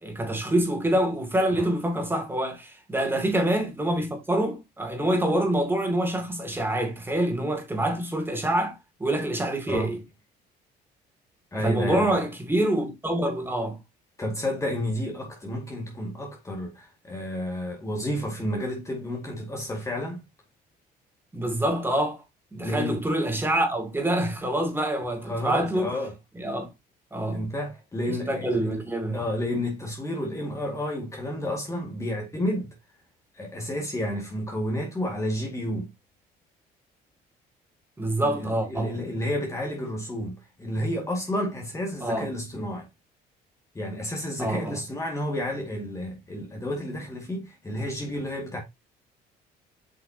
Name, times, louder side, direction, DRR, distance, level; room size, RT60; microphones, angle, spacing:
voice 1, 0.0-10.0 11.5-13.8 21.3-22.2 22.5-25.9 26.4-26.7 27.1-27.5 28.0-29.2 38.0-38.9 42.0-42.3 44.4-44.8, right 1 dB, 15° right, 2.7 m, -26 dB
voice 2, 11.5-12.2 14.2-20.2 22.6-23.0 25.2-26.1 27.3-28.8 29.1-32.7 33.3-35.9 38.2-42.9 43.7-48.6, left 1 dB, 15° left, 2.0 m, -31 dB
7.6 x 5.7 x 2.8 m
cardioid pair, 110°, 17 cm